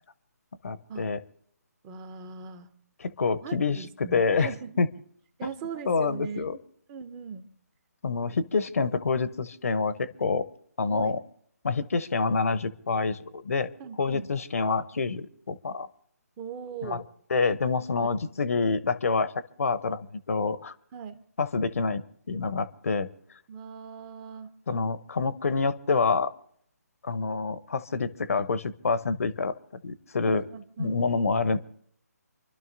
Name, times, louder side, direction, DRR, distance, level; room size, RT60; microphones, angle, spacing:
voice 1, 0.6-1.2 3.0-4.5 4.8-4.9 5.4-5.5 5.9-6.6 8.0-10.5 10.8-11.2 11.6-13.7 14.0-15.9 16.8-17.0 17.3-19.3 19.6-20.7 21.4-22.0 22.3-23.1 24.7-26.3 27.0-29.5 29.8-30.4 30.8-31.6, left 4 dB, 60° left, 15 dB, 0.8 m, -27 dB
voice 2, 1.8-2.7 3.4-4.8 5.4-6.5 6.9-7.5 10.9-11.2 13.8-14.3 16.4-17.0 18.0-18.1 20.9-21.2 23.5-24.5 30.3-31.0, right 6 dB, 20° right, 11 dB, 0.8 m, -39 dB
28.5 x 12.0 x 2.6 m, 0.66 s
figure-of-eight pair, 145°, 9 cm